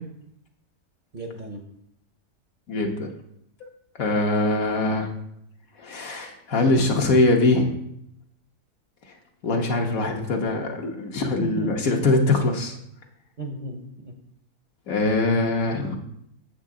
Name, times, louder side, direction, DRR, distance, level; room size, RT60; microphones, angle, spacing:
voice 1, 1.1-1.6 9.9-10.2 11.4-11.8 13.4-14.2, right 2 dB, 40° right, 2 dB, 0.7 m, -35 dB
voice 2, 2.7-3.1 4.0-5.1 5.8-7.7 9.4-12.8 14.9-16.0, left 2 dB, 65° left, 2 dB, 1.5 m, -22 dB
8.1 x 7.3 x 3.7 m, 0.74 s
omnidirectional pair, 1.6 m